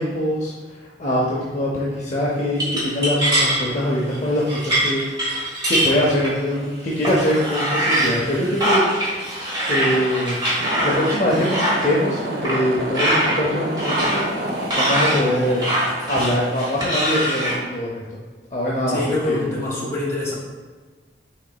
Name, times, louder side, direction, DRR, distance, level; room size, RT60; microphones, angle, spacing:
voice 1, 0.0-5.0 5.7-8.8 9.7-14.2 14.8-15.6 16.1-18.0 18.5-19.5, equal, 40° left, -4 dB, 0.6 m, -23 dB
sound 1, 2.6-3.6 4.1-4.2 4.5-6.6 7.0-11.9 12.4-12.6 12.9-13.4 13.8-17.5, right 1 dB, 25° right, 1.1 m, -23 dB
sound 2, 10.5-17.0, right 1 dB, 65° right, 0.6 m, -29 dB
voice 2, 18.9-20.3, left 2 dB, 15° left, -5 dB, 1.1 m, -25 dB
6.0 x 3.8 x 2.2 m, 1.4 s
head